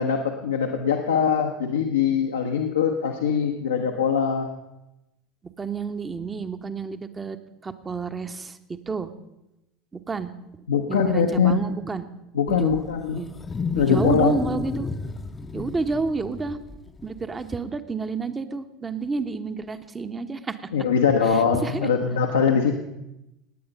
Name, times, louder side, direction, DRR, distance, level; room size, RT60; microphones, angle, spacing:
voice 1, 0.0-4.5 10.7-11.6 12.3-13.2 13.7-14.3 20.7-22.7, left 6 dB, 75° left, 2 dB, 1.0 m, -22 dB
voice 2, 5.6-7.4 7.6-8.6 8.9-9.1 9.9-10.3 10.9-12.1 12.5-12.8 13.1-13.3 13.8-14.9 15.5-16.6 17.0-20.6 21.3-21.9, right 4 dB, 20° right, 10 dB, 1.0 m, -29 dB
Wild animals, 12.5-17.5, left 4 dB, 20° left, 0.8 m, -31 dB
17.5 x 9.7 x 5.3 m, 0.92 s
figure-of-eight pair, 75°, 0 cm